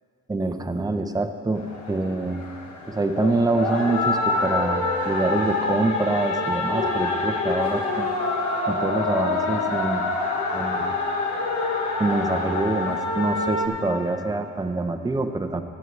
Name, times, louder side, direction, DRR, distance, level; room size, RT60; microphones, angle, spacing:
voice 1, 0.3-2.5 2.9-8.1 8.6-10.1 10.5-11.0 12.0-15.6, right 2 dB, 15° right, 6 dB, 0.7 m, -25 dB
sound 1, 1.6-13.7, left 3 dB, 70° left, 1.5 m, -26 dB
16.0 x 9.4 x 3.2 m, 2.3 s
cardioid pair, 90°, 30 cm